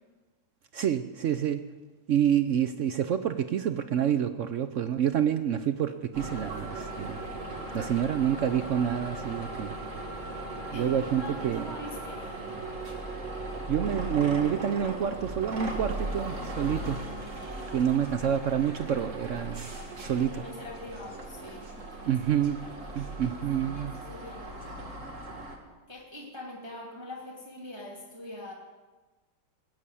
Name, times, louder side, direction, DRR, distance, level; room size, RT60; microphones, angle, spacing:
voice 1, 0.7-1.6 2.1-7.2 7.7-9.8 10.7-11.7 13.7-17.0 17.7-19.7 20.0-20.4 22.1-22.6 22.9-23.9, right 9 dB, 75° right, 9 dB, 0.7 m, -28 dB
sound 1, 6.1-25.6, right 2 dB, 40° right, 2.2 m, -38 dB
voice 2, 7.7-8.2 10.7-12.5 17.6-18.3 20.2-23.2 23.7-24.9 25.9-28.5, left 1 dB, 15° right, -2 dB, 2.1 m, -44 dB
19.5 x 7.4 x 8.4 m, 1.3 s
omnidirectional pair, 2.0 m